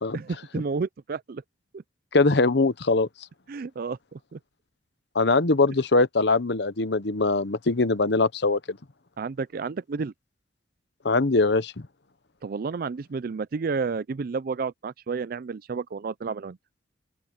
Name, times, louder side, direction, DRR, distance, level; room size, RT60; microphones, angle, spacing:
voice 1, 0.1-1.4 1.7-1.8 3.5-4.4 9.2-10.1 12.4-16.6, right 4 dB, 50° right, 0.4 m, -31 dB
voice 2, 2.1-3.1 5.1-8.8 11.0-11.7, left 3 dB, 65° left, 1.0 m, -22 dB
open air
head